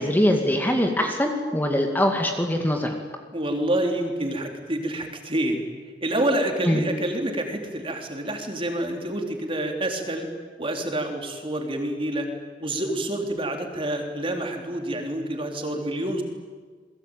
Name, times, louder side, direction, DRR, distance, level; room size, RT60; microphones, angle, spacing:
voice 1, 0.0-3.0 6.6-6.8, left 1 dB, 10° left, 3 dB, 2.2 m, -22 dB
voice 2, 3.3-5.6 6.0-10.3 10.6-12.3 12.6-16.2, right 1 dB, 30° right, 3 dB, 3.8 m, -27 dB
29.0 x 22.0 x 9.1 m, 1.5 s
head